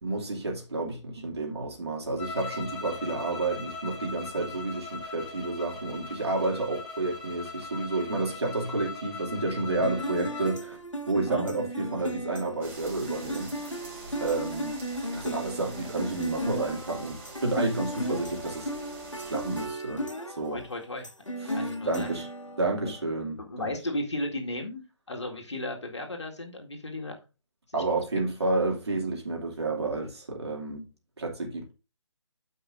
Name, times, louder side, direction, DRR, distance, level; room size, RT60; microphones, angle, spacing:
voice 1, 0.0-10.8 11.1-13.7 14.2-14.7 15.1-18.7 19.3-20.6 21.4-22.3 22.6-23.7 27.7-30.8 31.2-31.7, right 3 dB, 60° right, 2.6 m, -30 dB
sound 1, 2.2-10.6, left 4 dB, 20° left, 2.8 m, -40 dB
sound 2, 9.8-23.0, equal, 85° left, 1.6 m, -36 dB
sound 3, 12.6-19.7, right 2 dB, 25° right, 3.7 m, -45 dB
voice 2, 20.5-21.1 21.5-22.1 22.8-22.9 23.4-27.2 27.7-28.0, left 1 dB, 65° left, 2.0 m, -35 dB
13.5 x 5.5 x 2.6 m
figure-of-eight pair, 145°, 16 cm